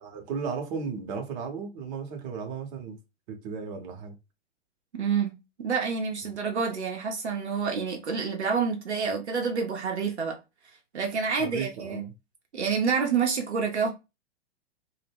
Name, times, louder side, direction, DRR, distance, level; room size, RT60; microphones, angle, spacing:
voice 1, 0.0-3.0 3.3-4.1 6.2-6.3 11.3-12.1, right 5 dB, 40° right, 0.8 m, -35 dB
voice 2, 4.9-10.4 10.9-12.0 12.5-13.9, right 5 dB, 80° right, 0.7 m, -28 dB
2.2 x 2.1 x 3.3 m
figure-of-eight pair, 105°, 33 cm